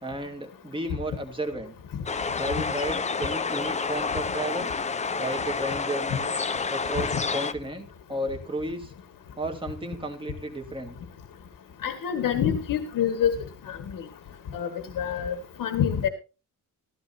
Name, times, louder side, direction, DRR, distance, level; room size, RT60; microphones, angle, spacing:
voice 1, 0.0-1.7 2.4-4.7 5.2-6.3 6.7-8.9 9.4-11.0, right 1 dB, 15° right, 4 dB, 1.9 m, -33 dB
sound 1, 2.1-7.5, left 4 dB, 20° left, 0.6 m, -29 dB
voice 2, 11.8-13.3 13.7-13.8 14.5-14.7 15.0-16.1, left 9 dB, 85° left, 7 dB, 1.7 m, -26 dB
15.0 x 14.0 x 2.7 m, 0.31 s
wide cardioid pair, 175°, 33 cm